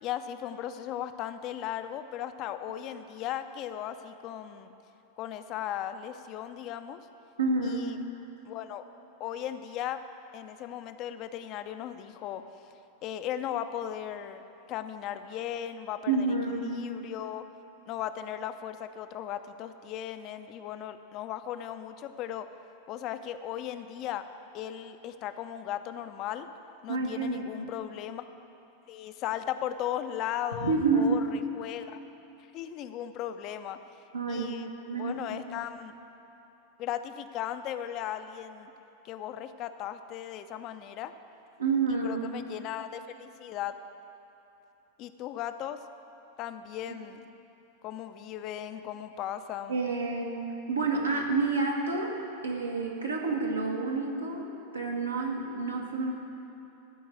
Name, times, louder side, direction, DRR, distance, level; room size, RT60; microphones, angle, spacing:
voice 1, 0.0-4.7 5.2-7.0 7.6-8.0 8.5-8.8 9.2-10.0 10.3-12.4 13.0-14.4 14.7-16.3 16.6-17.4 17.9-22.5 22.9-24.2 24.5-26.5 26.8-28.2 28.9-32.0 32.5-33.8 34.3-36.0 36.8-38.7 39.0-41.1 42.0-43.8 45.0-45.8 46.4-47.2 47.8-49.8, left 10 dB, 40° left, 9 dB, 0.5 m, -37 dB
voice 2, 7.4-7.9 16.1-16.7 26.9-27.4 30.6-31.2 34.1-34.5 34.8-35.2 41.6-42.2 46.9-47.0 49.7-50.3 50.7-52.1 52.4-54.4 54.7-56.1, right 4 dB, 80° right, -1 dB, 1.5 m, -28 dB
14.0 x 4.6 x 8.9 m, 2.9 s
figure-of-eight pair, 90°, 0 cm